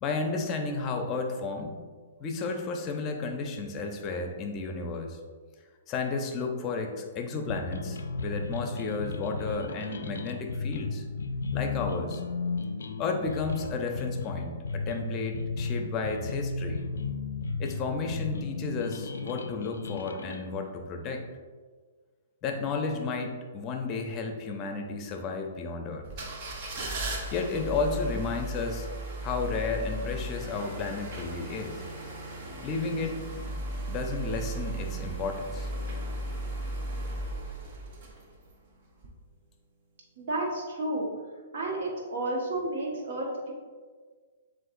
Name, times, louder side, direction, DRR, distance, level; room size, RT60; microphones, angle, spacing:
voice 1, 0.0-1.7 2.2-5.2 5.9-11.0 11.5-12.2 13.0-16.8 17.6-21.2 22.4-26.1 27.3-28.9 29.2-31.8 32.6-33.3 33.9-35.7, left 4 dB, 30° left, 4 dB, 0.6 m, -32 dB
sound 1, 7.5-20.4, left 4 dB, 80° left, 0.3 m, -34 dB
sound 2, 26.0-38.5 39.0-39.1, right 1 dB, 45° right, 0.9 m, -36 dB
voice 2, 40.2-41.1 41.5-43.5, right 1 dB, 65° right, -3 dB, 1.4 m, -31 dB
7.4 x 2.6 x 2.6 m, 1.5 s
hypercardioid pair, 130°, 0 cm